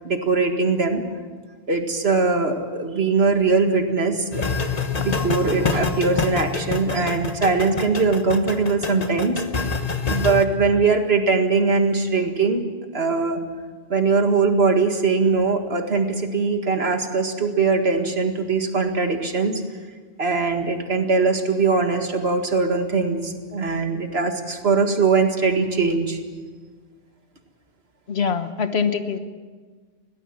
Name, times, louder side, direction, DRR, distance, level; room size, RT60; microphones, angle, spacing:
voice 1, 0.0-1.0 1.7-4.4 5.0-9.4 10.1-12.6 12.9-13.4 13.9-19.5 20.2-26.2, right 4 dB, 75° right, 5 dB, 2.1 m, -21 dB
sound 1, 4.3-10.4, left 4 dB, 40° left, 1.2 m, -26 dB
voice 2, 28.1-29.2, left 6 dB, 80° left, 9 dB, 1.5 m, -23 dB
22.5 x 17.5 x 7.5 m, 1.5 s
omnidirectional pair, 1.1 m